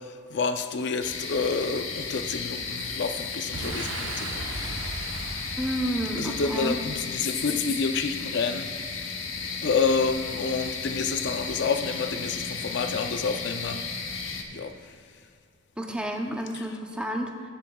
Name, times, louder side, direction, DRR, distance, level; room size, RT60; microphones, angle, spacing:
voice 1, 0.0-4.6 6.2-8.7 9.4-13.8 14.5-15.0 16.5-16.7, left 4 dB, 55° left, 8 dB, 0.5 m, -29 dB
sound 1, 1.0-14.4, left 5 dB, 75° left, 1.0 m, -34 dB
Boom, 3.5-7.1, right 2 dB, 70° right, 0.9 m, -37 dB
voice 2, 5.6-6.8 15.8-17.5, right 1 dB, 5° right, 2 dB, 0.6 m, -30 dB
21.0 x 7.1 x 2.3 m, 2.4 s
head